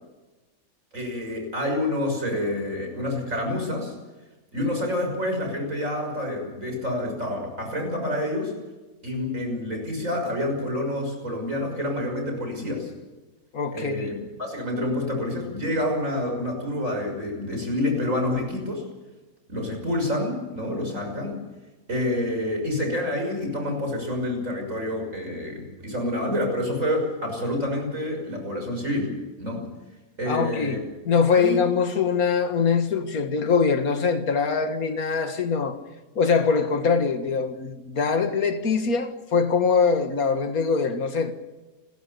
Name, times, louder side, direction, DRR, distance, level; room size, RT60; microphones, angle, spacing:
voice 1, 0.9-3.9 4.5-8.5 9.0-12.9 13.7-14.1 14.4-18.8 19.5-21.4 21.9-29.1 29.4-29.7 30.2-30.8 31.3-31.6, left 1 dB, 60° right, 6.5 m, -28 dB
voice 2, 13.5-14.1 30.3-30.8 31.1-35.8 36.2-41.3, left 5 dB, 75° left, 2.2 m, -23 dB
29.5 x 14.5 x 7.0 m
omnidirectional pair, 1.5 m